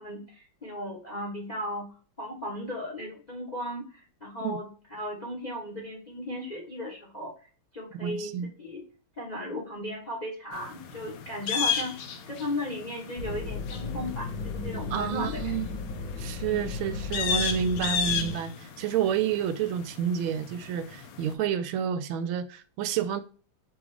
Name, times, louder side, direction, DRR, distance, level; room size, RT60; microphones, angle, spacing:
voice 1, 0.0-1.9 2.2-7.3 7.7-8.8 9.2-12.0 12.3-15.5, left 1 dB, 35° left, 0.7 m, -36 dB
voice 2, 8.0-8.5 14.9-15.8 16.2-23.2, right 8 dB, 80° right, 1.4 m, -29 dB
sound 1, 10.5-21.3, left 7 dB, 80° left, 1.4 m, -35 dB
sound 2, 13.2-18.3, left 4 dB, 50° left, 1.2 m, -35 dB
6.1 x 2.3 x 3.2 m
omnidirectional pair, 2.2 m